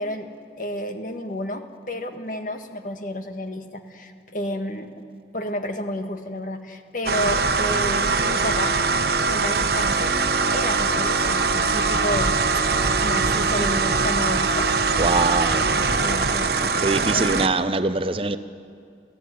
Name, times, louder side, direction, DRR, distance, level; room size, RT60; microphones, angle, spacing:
voice 1, 0.0-5.0 5.3-8.8 9.3-12.3 13.0-14.7 15.9-17.5, left 1 dB, 45° left, 6 dB, 1.7 m, -31 dB
sound 1, 7.1-17.5, right 4 dB, 55° right, 1.2 m, -22 dB
voice 2, 15.0-15.7 16.8-18.4, right 3 dB, 30° right, 11 dB, 0.7 m, -23 dB
29.5 x 15.5 x 9.5 m, 2.3 s
head